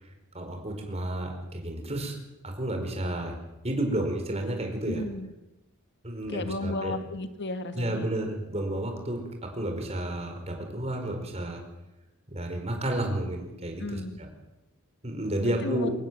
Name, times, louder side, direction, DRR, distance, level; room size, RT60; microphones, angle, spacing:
voice 1, 0.3-2.2 2.4-3.4 3.6-5.0 6.0-6.9 7.7-11.6 12.3-14.0 15.0-15.9, right 1 dB, 30° right, 4 dB, 4.8 m, -31 dB
voice 2, 4.8-5.3 6.3-8.1 13.8-14.2 15.4-15.9, left 2 dB, 50° left, 10 dB, 1.6 m, -34 dB
24.0 x 19.5 x 7.6 m, 0.94 s
head